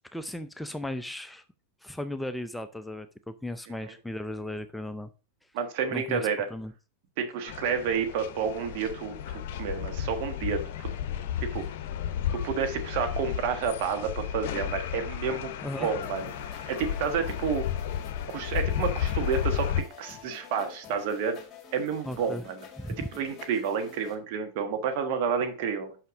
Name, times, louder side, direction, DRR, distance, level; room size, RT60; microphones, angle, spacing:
voice 1, 0.1-1.4 1.8-5.1 5.9-6.7 15.6-15.9 22.1-22.4 22.8-23.1, left 1 dB, 5° left, 0.5 m, -36 dB
voice 2, 5.5-6.5 7.2-10.9 11.4-11.6 12.3-17.7 18.3-21.4 21.7-22.6 23.1-25.9, right 6 dB, 50° right, 1.4 m, -30 dB
sound 1, 7.5-19.8, left 9 dB, 55° left, 0.8 m, -33 dB
sound 2, 16.0-24.1, left 8 dB, 30° left, 2.2 m, -48 dB
5.7 x 5.7 x 4.8 m
figure-of-eight pair, 95°, 0 cm